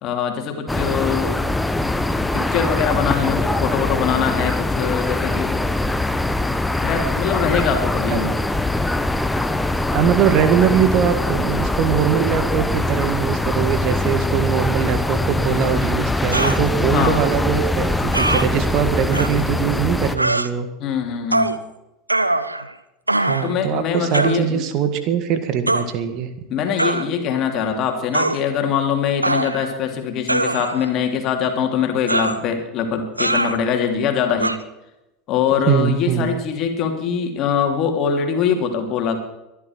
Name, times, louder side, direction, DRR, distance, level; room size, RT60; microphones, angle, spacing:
voice 1, 0.0-1.3 2.3-5.5 6.8-8.4 16.9-17.2 20.8-21.6 23.4-24.6 26.5-34.6 35.3-39.2, left 7 dB, 40° left, 4 dB, 2.9 m, -22 dB
sound 1, 0.7-20.2, left 2 dB, 5° left, 1.0 m, -22 dB
voice 2, 9.9-20.7 23.2-26.3 35.7-36.4, right 9 dB, 45° right, 9 dB, 1.9 m, -21 dB
sound 2, 16.3-16.6 18.1-18.5 19.1-19.3 20.2-20.5 21.3-21.6 22.1-22.7 23.1-23.5 24.1-24.4 25.7-25.9 26.8-27.1 28.1-28.4 29.2-29.8 30.3-30.9 32.1-32.4 33.2-33.6 34.4-34.6, right 2 dB, 85° right, 0.7 m, -21 dB
23.5 x 11.5 x 4.6 m, 0.94 s
figure-of-eight pair, 80°, 0 cm